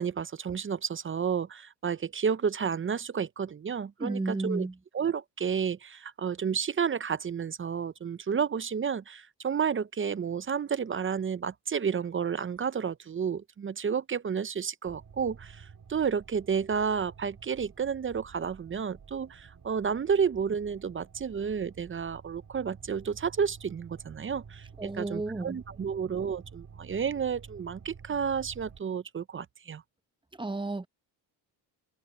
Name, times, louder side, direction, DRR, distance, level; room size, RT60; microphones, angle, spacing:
voice 1, 0.0-4.7 4.9-29.8, right 6 dB, 30° right, 0.5 m, -31 dB
voice 2, 4.0-4.7 24.8-25.6 30.4-30.9, right 2 dB, 10° right, 0.9 m, -32 dB
sound 1, 14.8-28.8, right 6 dB, 45° right, 3.6 m, -51 dB
cardioid pair, 100°, 45 cm